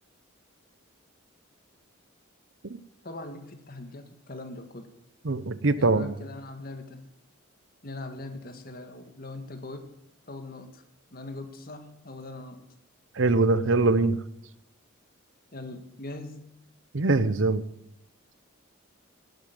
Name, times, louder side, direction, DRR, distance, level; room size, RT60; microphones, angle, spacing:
voice 1, 3.0-4.9 5.8-7.0 7.8-9.9 10.3-10.8 11.1-12.6 15.5-16.5, left 2 dB, 45° left, 7 dB, 1.7 m, -41 dB
voice 2, 5.2-6.1 13.2-14.2 16.9-17.6, right 3 dB, 60° right, 15 dB, 0.8 m, -23 dB
11.5 x 8.1 x 9.0 m, 0.82 s
head